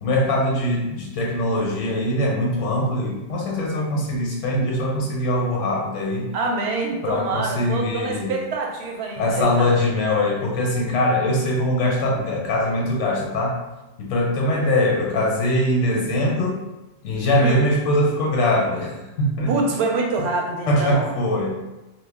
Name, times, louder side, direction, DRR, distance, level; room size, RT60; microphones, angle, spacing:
voice 1, 0.0-6.3 7.0-8.3 9.2-13.6 14.0-16.6 17.0-18.9 19.2-19.5 20.7-21.5, left 1 dB, 80° left, -2 dB, 0.9 m, -22 dB
voice 2, 6.3-9.9 17.4-17.6 19.5-21.2, right 3 dB, 70° right, 0 dB, 0.8 m, -26 dB
2.2 x 2.1 x 3.3 m, 1.0 s
omnidirectional pair, 1.2 m